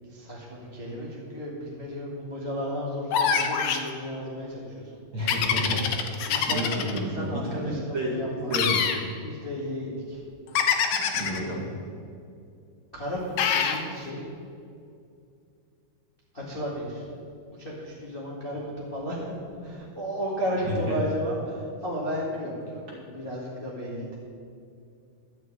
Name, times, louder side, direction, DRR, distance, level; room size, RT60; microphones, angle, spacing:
voice 1, 0.1-5.0 6.3-8.5 9.2-10.2 11.1-11.6 12.9-14.3 16.3-17.0 17.6-19.3 19.6-24.2, equal, 20° left, -6 dB, 1.6 m, -34 dB
sound 1, 3.1-3.9 5.3-7.0 8.5-9.0 10.5-11.4 13.4-13.8, left 7 dB, 75° left, 2.3 m, -24 dB
voice 2, 5.1-5.9 6.5-8.9 11.0-11.6 20.7-20.8, equal, 40° right, -5 dB, 2.4 m, -30 dB
12.5 x 6.4 x 8.9 m, 2.5 s
omnidirectional pair, 3.9 m